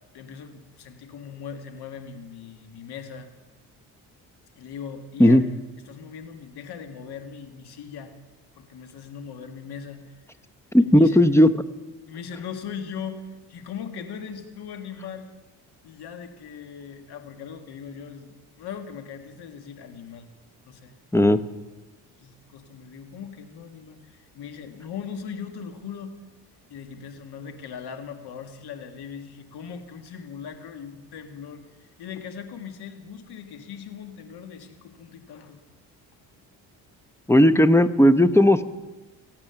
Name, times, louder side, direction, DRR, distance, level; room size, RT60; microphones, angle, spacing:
voice 1, 0.1-3.3 4.6-5.4 5.9-8.2 8.6-10.2 10.8-11.2 12.1-15.3 15.8-20.3 20.7-20.9 22.2-26.1 26.7-35.6, left 7 dB, 70° left, 6 dB, 1.9 m, -39 dB
voice 2, 10.7-11.5 21.1-21.4 37.3-38.6, left 1 dB, 5° left, 12 dB, 0.8 m, -15 dB
23.5 x 8.8 x 5.8 m, 1.2 s
supercardioid pair, 75°, 40 cm